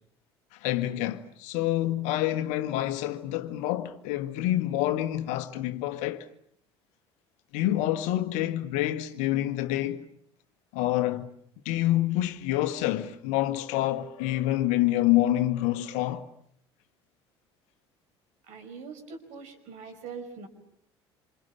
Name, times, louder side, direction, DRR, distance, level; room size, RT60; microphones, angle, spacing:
voice 1, 0.6-6.3 7.5-10.1 10.7-11.3 11.6-16.3, left 14 dB, 60° left, 1.5 m, -27 dB
voice 2, 18.4-20.5, right 5 dB, 55° right, 5.4 m, -42 dB
28.0 x 27.0 x 7.2 m
figure-of-eight pair, 60°, 14 cm